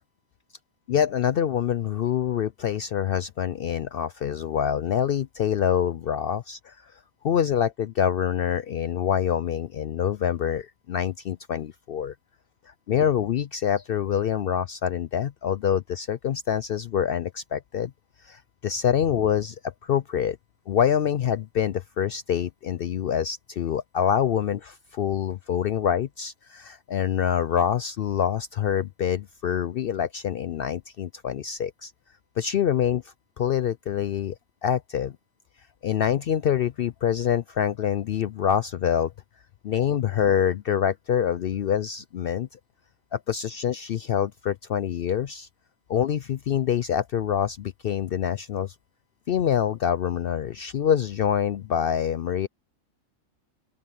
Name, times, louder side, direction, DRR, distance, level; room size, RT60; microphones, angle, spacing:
voice 1, 0.9-6.8 7.2-12.1 12.9-17.9 18.2-20.4 20.7-31.9 32.4-34.4 34.6-35.1 35.8-39.1 39.6-42.5 43.1-45.5 45.9-48.7 49.3-52.5, left 9 dB, 65° left, 0.5 m, -26 dB
open air
omnidirectional pair, 1.4 m